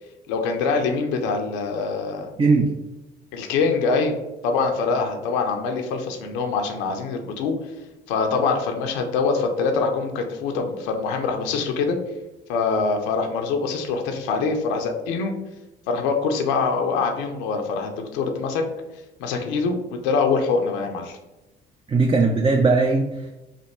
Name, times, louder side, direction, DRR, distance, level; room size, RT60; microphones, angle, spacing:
voice 1, 0.3-2.3 3.3-4.1 4.4-7.5 8.1-12.0 12.5-15.3 15.9-18.6 19.2-21.2, left 4 dB, 90° left, 4 dB, 0.6 m, -24 dB
voice 2, 2.4-2.7 21.9-23.4, right 3 dB, 25° right, 3 dB, 0.5 m, -19 dB
3.4 x 2.5 x 4.2 m, 0.99 s
supercardioid pair, 65°, 21 cm